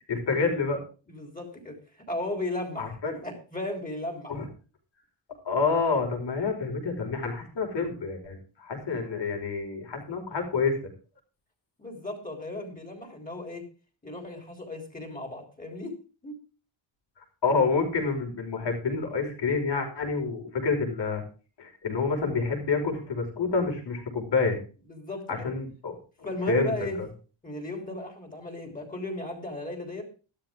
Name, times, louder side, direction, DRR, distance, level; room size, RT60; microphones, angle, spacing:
voice 1, 0.1-0.8 2.8-3.1 4.3-4.4 5.4-10.7 17.4-21.2 21.6-24.6 25.3-27.1, left 4 dB, 60° left, 2 dB, 5.1 m, -28 dB
voice 2, 1.1-1.8 2.1-4.3 11.8-13.6 14.0-15.9 16.2-16.4 24.9-25.5 26.2-27.0 27.4-30.0, left 2 dB, 15° left, 3 dB, 3.6 m, -35 dB
14.0 x 13.0 x 3.7 m, 0.36 s
wide cardioid pair, 175°, 48 cm